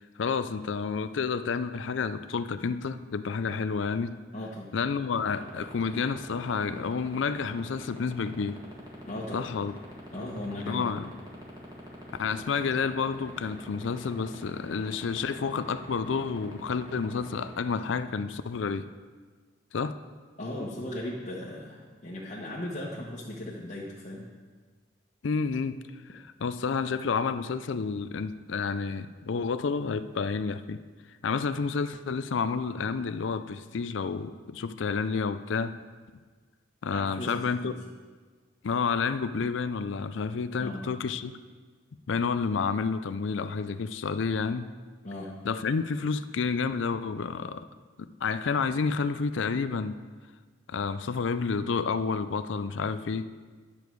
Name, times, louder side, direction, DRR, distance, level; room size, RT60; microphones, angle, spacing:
voice 1, 0.2-4.1 4.7-8.6 9.3-9.7 10.7-11.1 12.2-18.9 19.7-20.0 25.2-25.8 26.1-30.8 31.2-35.7 36.8-37.7 38.6-41.3 42.1-44.7 45.4-47.7 48.0-49.9 50.7-53.3, left 5 dB, 75° left, 12 dB, 0.4 m, -30 dB
voice 2, 4.3-4.8 9.0-9.5 10.1-11.0 20.4-24.3 36.9-37.7 40.6-40.8 45.0-45.3, left 1 dB, 40° left, -7 dB, 1.1 m, -37 dB
sound 1, 5.2-17.5, right 1 dB, 20° right, 1.7 m, -43 dB
10.5 x 6.9 x 4.6 m, 1.5 s
head